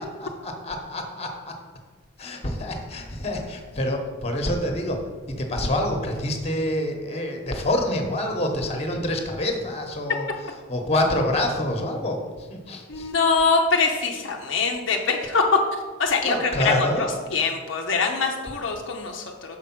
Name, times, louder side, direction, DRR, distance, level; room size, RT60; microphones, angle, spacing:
voice 1, 0.2-1.5 2.2-5.0 5.3-10.3 10.7-13.1 16.2-17.1, left 1 dB, 30° left, 3 dB, 1.1 m, -27 dB
voice 2, 12.9-15.4 15.7-19.6, left 4 dB, 65° left, 2 dB, 0.6 m, -24 dB
6.4 x 4.8 x 6.0 m, 1.4 s
head